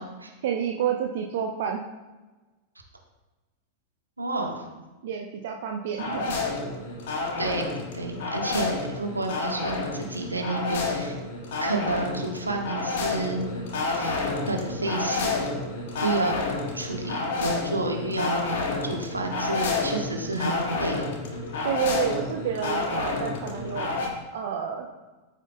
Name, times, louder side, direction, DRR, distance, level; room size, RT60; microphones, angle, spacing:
voice 1, 0.4-1.8 5.0-6.8 21.6-23.9 24.3-24.9, right 8 dB, 55° right, 2 dB, 0.7 m, -29 dB
voice 2, 4.2-4.6 7.4-11.2 11.6-13.4 13.9-15.5 16.0-16.3 16.7-21.1, right 2 dB, 80° right, 1 dB, 1.5 m, -30 dB
sound 1, 6.0-24.1, left 3 dB, 55° left, 2.0 m, -30 dB
13.0 x 8.2 x 2.3 m, 1.2 s
figure-of-eight pair, 90°, 0 cm